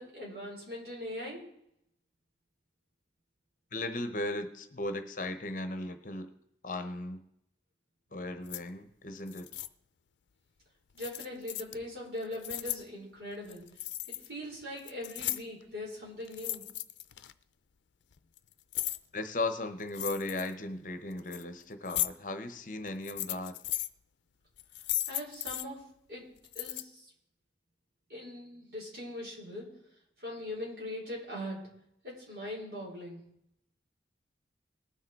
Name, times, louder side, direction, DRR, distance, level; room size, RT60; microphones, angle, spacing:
voice 1, 0.0-1.5 10.9-13.7 14.1-16.6 25.1-25.8 26.1-26.3 26.5-27.1 28.1-29.7 30.2-31.6 32.0-33.2, left 1 dB, 60° right, -3 dB, 4.9 m, -41 dB
voice 2, 3.7-6.3 6.6-7.2 8.1-9.5 19.1-23.6, left 2 dB, 45° left, 9 dB, 0.9 m, -36 dB
sound 1, 8.5-8.6 9.3-9.7 11.0-11.7 12.2-12.8 13.4-14.3 14.6-15.6 16.2-17.3 18.1-19.0 19.9-20.5 21.1-21.4 21.9-22.1 22.9-23.9 24.6-25.6 26.4-26.8, left 15 dB, 85° left, 0.5 m, -36 dB
19.0 x 6.5 x 4.6 m, 0.76 s
head